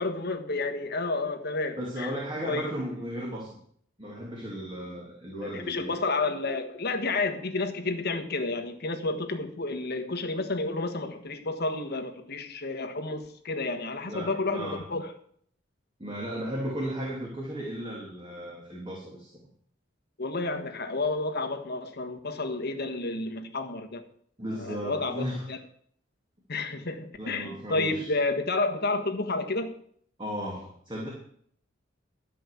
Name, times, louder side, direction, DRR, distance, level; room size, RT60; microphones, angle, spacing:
voice 1, 0.0-2.1 2.5-2.7 5.4-15.1 20.2-24.0 24.6-25.6 26.5-29.7, left 3 dB, 55° left, 5 dB, 1.5 m, -30 dB
voice 2, 1.8-3.6 4.0-5.9 14.1-14.8 16.0-19.3 24.4-25.5 27.2-28.1 30.2-31.1, equal, 25° right, -3 dB, 2.7 m, -35 dB
13.0 x 5.4 x 8.3 m, 0.63 s
head